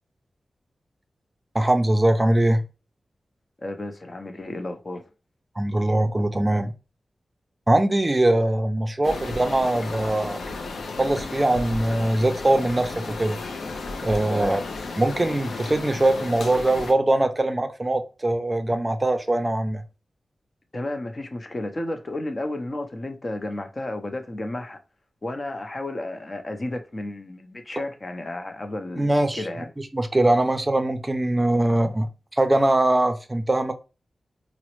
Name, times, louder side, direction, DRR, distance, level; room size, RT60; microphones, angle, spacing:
voice 1, 1.5-2.6 5.6-6.7 7.7-10.4 11.0-13.4 14.0-14.6 15.0-19.8 29.0-29.4 29.8-32.1 32.3-33.7, right 1 dB, 25° right, 0.4 m, -22 dB
voice 2, 3.6-5.0 14.3-14.6 20.7-24.8 25.2-29.7, left 1 dB, 40° left, 0.6 m, -32 dB
sound 1, 9.0-16.9, left 3 dB, 90° left, 0.5 m, -34 dB
3.9 x 2.0 x 3.0 m
cardioid pair, 55°, 0 cm